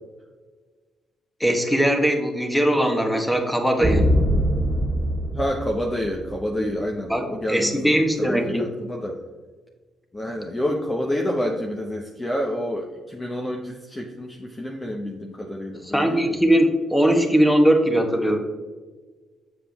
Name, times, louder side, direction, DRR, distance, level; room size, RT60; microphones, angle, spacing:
voice 1, 1.4-4.1 6.6-6.7 7.1-8.6 15.9-18.4, equal, ahead, 3 dB, 1.3 m, -20 dB
sound 1, 3.8-6.4, equal, 15° right, 1.7 m, -22 dB
voice 2, 5.3-9.2 10.1-16.4, equal, 20° left, 1 dB, 0.9 m, -28 dB
7.2 x 7.0 x 3.5 m, 1.3 s
cardioid pair, 90°, 0 cm